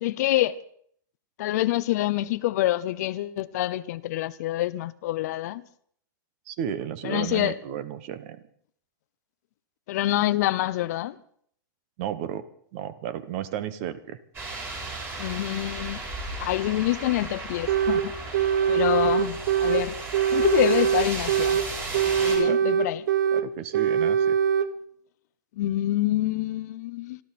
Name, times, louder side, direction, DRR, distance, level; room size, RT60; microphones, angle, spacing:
voice 1, 0.0-0.6 1.4-5.6 7.0-7.6 9.9-11.2 15.2-16.0 16.4-18.1 18.7-20.0 20.3-21.6 22.2-23.1 25.5-27.2, left 15 dB, 50° left, 0.7 m, -26 dB
voice 2, 6.5-8.4 12.0-14.2 22.4-22.6 23.3-24.4, right 10 dB, 40° right, 1.2 m, -33 dB
sound 1, 14.3-22.4, right 3 dB, 20° right, 4.7 m, -35 dB
sound 2, 17.7-18.1 18.3-19.8 20.1-21.7 21.9-23.5 23.7-24.7, right 8 dB, 65° right, 1.1 m, -22 dB
25.5 x 13.0 x 4.3 m
supercardioid pair, 155°, 11 cm